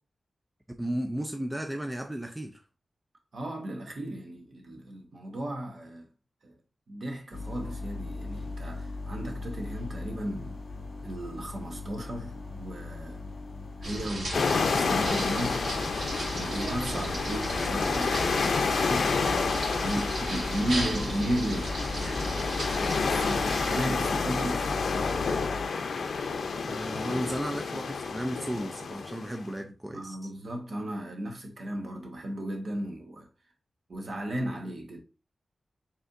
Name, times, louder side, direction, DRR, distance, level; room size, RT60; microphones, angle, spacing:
voice 1, 0.8-2.6 20.0-20.3 26.7-30.2, equal, 10° right, 0.3 m, -34 dB
voice 2, 3.3-6.1 6.4-6.6 6.9-10.6 11.0-13.2 13.8-15.9 16.2-18.2 18.6-25.1 29.9-33.3 33.9-35.0, right 1 dB, 55° right, 1.1 m, -35 dB
sound 1, 7.3-25.7, left 3 dB, 55° left, 1.5 m, -39 dB
sound 2, 13.8-23.8, right 1 dB, 70° right, 2.0 m, -36 dB
sound 3, 14.3-29.4, left 4 dB, 80° left, 0.5 m, -30 dB
5.3 x 3.4 x 2.5 m
wide cardioid pair, 175°, 0 cm